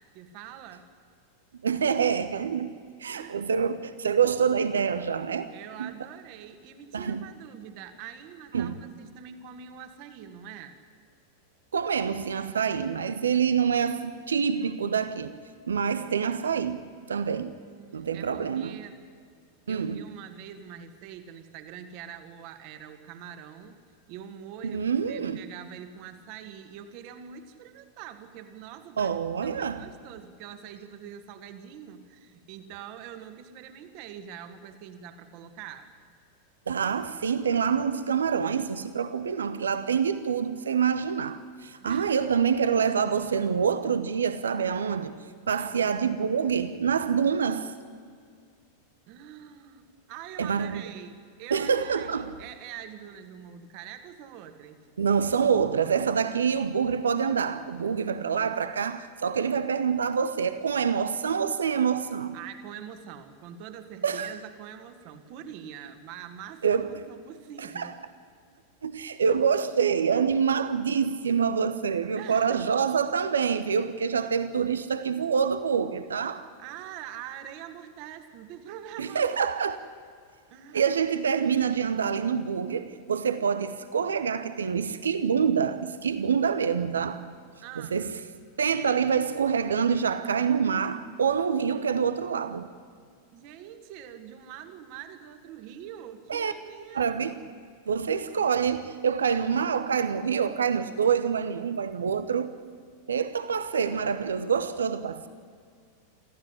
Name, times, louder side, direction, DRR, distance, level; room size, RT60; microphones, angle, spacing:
voice 1, 0.1-0.9 3.1-3.5 5.5-10.8 17.6-19.0 19.7-23.8 24.1-24.8 25.1-29.1 29.4-35.9 41.8-42.1 45.5-45.9 49.1-54.9 62.3-67.9 72.2-72.7 74.2-74.3 76.6-79.4 80.5-80.8 87.6-88.0 93.3-97.5, right 9 dB, 45° right, 2.0 m, -44 dB
voice 2, 1.6-2.7 3.0-5.5 5.8-5.9 6.9-7.3 8.5-8.8 11.7-15.4 15.7-17.6 17.9-18.8 19.7-20.0 24.6-25.4 29.0-29.9 36.7-45.2 45.5-47.7 50.4-50.8 51.5-52.3 55.0-62.4 64.0-64.3 66.6-67.0 67.6-67.9 68.8-76.5 79.0-79.8 80.7-87.2 87.8-88.2 88.6-92.7 96.3-96.5 96.9-97.3 97.9-102.5 103.1-105.3, right 6 dB, 70° right, 0.9 m, -26 dB
25.5 x 15.0 x 10.0 m
figure-of-eight pair, 90°, 0 cm